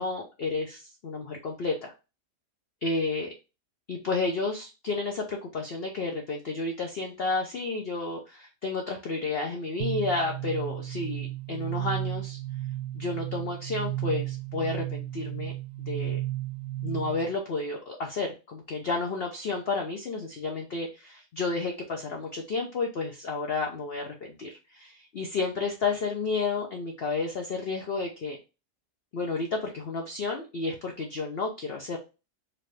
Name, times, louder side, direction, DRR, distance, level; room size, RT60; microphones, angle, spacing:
voice 1, 0.0-1.9 2.8-3.3 3.9-12.4 12.9-15.5 15.9-16.2 16.8-28.4 29.1-32.0, left 3 dB, 60° left, 1 dB, 0.6 m, -31 dB
sound 1, 9.8-17.4, right 14 dB, 70° right, 1.0 m, -34 dB
4.4 x 2.6 x 3.2 m, 0.30 s
omnidirectional pair, 1.8 m